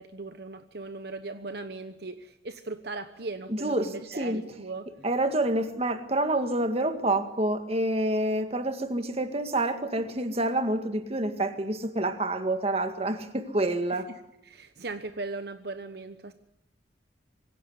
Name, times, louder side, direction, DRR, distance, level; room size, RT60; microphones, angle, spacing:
voice 1, 0.0-4.9 13.9-16.3, right 3 dB, 55° right, 9 dB, 1.1 m, -38 dB
voice 2, 3.5-4.4 5.0-14.1, right 1 dB, 35° right, 8 dB, 1.9 m, -28 dB
25.5 x 16.5 x 9.7 m, 0.83 s
head